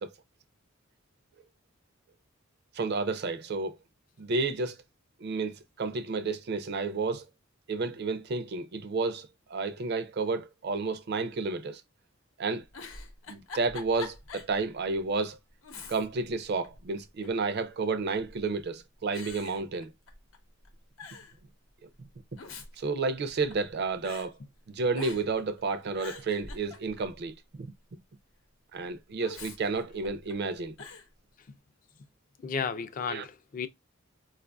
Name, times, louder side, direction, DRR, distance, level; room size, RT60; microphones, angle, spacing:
voice 1, 2.7-3.8 4.2-4.8 5.2-7.2 7.7-11.8 12.4-12.6 13.3-15.4 15.9-19.9 22.8-24.3 24.7-27.7 28.7-30.7 33.1-33.2, right 4 dB, 55° right, 0.4 m, -31 dB
Giggle, 12.7-14.6 14.9-15.0 15.6-16.3 16.6-17.4 18.2-18.6 19.1-20.4 20.6-20.7 21.0-21.4 22.2-23.7 24.0-24.3 24.9-25.4 25.8-27.2 29.2-30.3 30.8-31.1, left 4 dB, 85° left, 0.8 m, -45 dB
voice 2, 32.4-33.7, left 6 dB, 40° left, 0.4 m, -33 dB
4.4 x 2.4 x 2.2 m
head